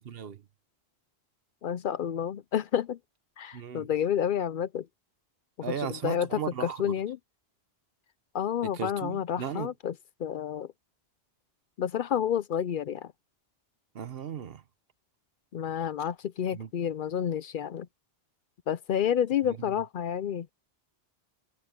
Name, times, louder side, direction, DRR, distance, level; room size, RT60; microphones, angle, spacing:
voice 1, 0.1-0.4 3.5-3.9 5.6-6.9 8.6-9.7 13.9-14.6 16.5-16.7 19.4-19.7, right 8 dB, 70° right, 1.1 m, -36 dB
voice 2, 1.6-3.0 3.4-4.9 5.6-7.2 8.3-9.9 10.2-10.7 11.8-13.1 15.5-17.9 18.7-20.5, left 9 dB, 60° left, 0.6 m, -30 dB
omnidirectional pair, 1.0 m